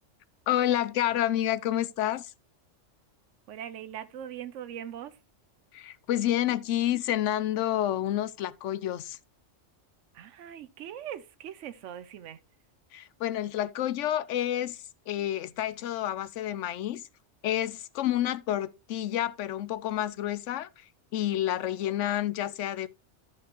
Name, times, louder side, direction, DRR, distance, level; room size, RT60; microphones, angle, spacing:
voice 1, 0.5-2.3 5.7-9.2 12.9-14.8 15.1-17.0 17.4-20.7 21.1-22.9, left 12 dB, 85° left, 0.9 m, -29 dB
voice 2, 3.5-5.2 10.1-12.4, right 10 dB, 90° right, 1.0 m, -41 dB
12.5 x 5.9 x 3.0 m
omnidirectional pair, 1.2 m